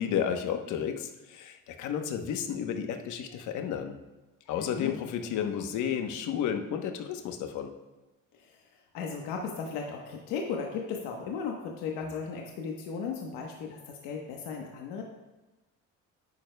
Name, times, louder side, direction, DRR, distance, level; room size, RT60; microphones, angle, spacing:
voice 1, 0.0-4.0 4.5-7.7, left 8 dB, 60° left, 6 dB, 0.9 m, -32 dB
voice 2, 4.6-5.0 8.3-8.5 8.9-15.0, left 5 dB, 85° left, 1 dB, 1.1 m, -36 dB
10.0 x 9.2 x 2.2 m, 1.1 s
cardioid pair, 145°, 33 cm